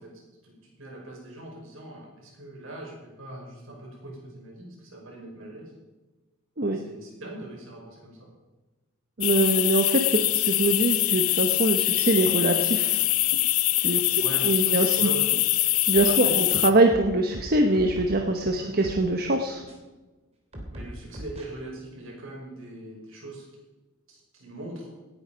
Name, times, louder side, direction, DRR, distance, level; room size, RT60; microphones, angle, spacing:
voice 1, 0.0-5.7 6.7-8.3 10.1-10.2 14.2-15.3 16.1-16.4 18.6-18.7 20.7-23.5 24.1-24.9, right 1 dB, 65° right, -1 dB, 5.7 m, -41 dB
sound 1, 9.2-16.7, left 17 dB, 80° left, 0.7 m, -24 dB
voice 2, 9.2-10.1 10.3-13.0 13.8-15.1 15.9-19.6, right 2 dB, 45° right, 4 dB, 1.1 m, -23 dB
sound 2, 15.9-16.5 16.9-18.3 18.8-19.0 19.7-19.8 20.5-21.5, equal, 30° right, 2.9 m, -40 dB
18.0 x 10.0 x 5.2 m, 1.2 s
head